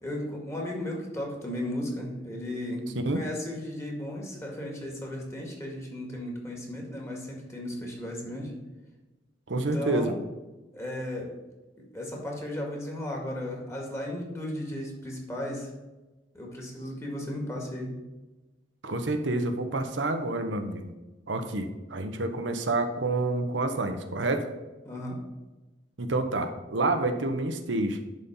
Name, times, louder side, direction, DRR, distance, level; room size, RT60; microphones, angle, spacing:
voice 1, 0.0-8.5 9.5-10.1 10.7-11.4 11.8-15.7 16.3-17.9 24.8-25.2, left 1 dB, 15° left, -1 dB, 2.0 m, -35 dB
voice 2, 9.5-10.1 18.8-20.9 21.3-24.5 26.0-28.1, right 2 dB, 80° right, 7 dB, 1.0 m, -28 dB
10.5 x 4.2 x 5.6 m, 1.1 s
head